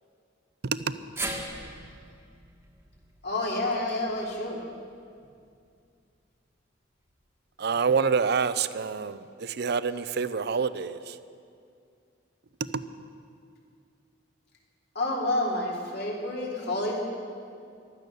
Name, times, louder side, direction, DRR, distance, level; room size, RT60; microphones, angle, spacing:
voice 1, 0.6-0.9 7.6-11.2 12.7-12.8, right 5 dB, 60° right, 14 dB, 0.5 m, -27 dB
sound 1, 1.2-5.4 5.8-5.9 7.0-7.1, right 2 dB, 15° right, 1.4 m, -40 dB
voice 2, 3.2-4.6 14.9-17.0, left 1 dB, 60° left, -2 dB, 3.1 m, -29 dB
15.5 x 12.0 x 6.8 m, 2.4 s
head